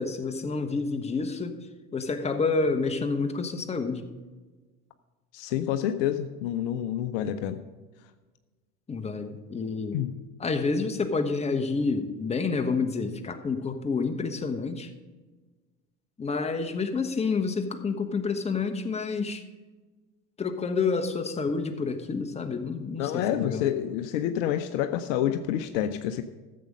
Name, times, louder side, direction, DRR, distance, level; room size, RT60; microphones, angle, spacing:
voice 1, 0.0-1.6 1.9-4.1 8.9-10.0 10.4-14.9 16.2-19.4 20.4-23.6, left 4 dB, 15° left, 6 dB, 1.1 m, -29 dB
voice 2, 5.3-7.6 9.9-10.2 23.0-26.2, left 10 dB, 55° left, 9 dB, 0.8 m, -28 dB
14.0 x 7.6 x 5.4 m, 1.3 s
figure-of-eight pair, 80°, 45 cm